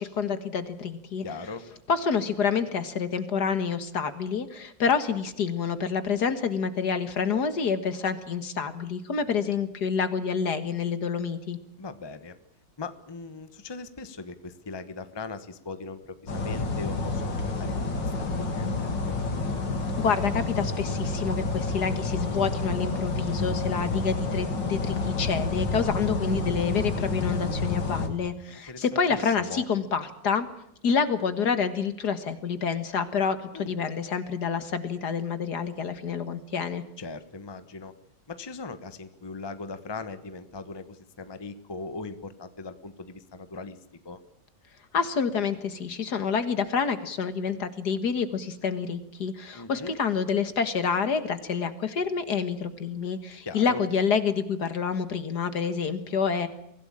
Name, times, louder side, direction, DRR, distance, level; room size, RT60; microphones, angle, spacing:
voice 1, 0.0-1.2 1.9-11.6 20.0-30.5 30.8-36.8 44.9-56.5, left 6 dB, 60° left, 11 dB, 2.1 m, -28 dB
voice 2, 1.2-1.6 11.8-12.3 12.8-19.2 28.7-28.8 29.1-29.6 33.5-33.8 37.0-37.9 38.3-43.8 44.0-44.2 49.5-49.9 53.4-53.8, left 3 dB, 15° left, 10 dB, 1.1 m, -39 dB
sound 1, 16.3-28.1, left 3 dB, 75° left, 3.3 m, -29 dB
24.0 x 16.5 x 8.7 m, 0.79 s
omnidirectional pair, 2.0 m